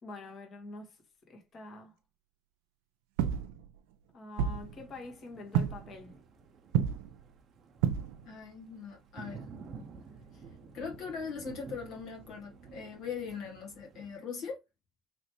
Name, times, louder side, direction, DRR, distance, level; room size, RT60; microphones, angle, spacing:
voice 1, 0.0-1.0 1.3-1.9 4.1-6.2, left 2 dB, 45° left, 1.3 m, -46 dB
sound 1, 3.2-3.9 4.4-5.1 5.5-6.0 6.7-7.3 7.8-8.4 9.6-9.7 11.8-11.9, right 8 dB, 85° right, 0.3 m, -31 dB
Thunder, 4.5-14.1, right 5 dB, 50° right, 0.7 m, -51 dB
voice 2, 8.2-9.5 10.3-10.4 10.7-14.6, left 5 dB, 70° left, 1.3 m, -40 dB
3.1 x 2.9 x 2.9 m
supercardioid pair, 80°, 0 cm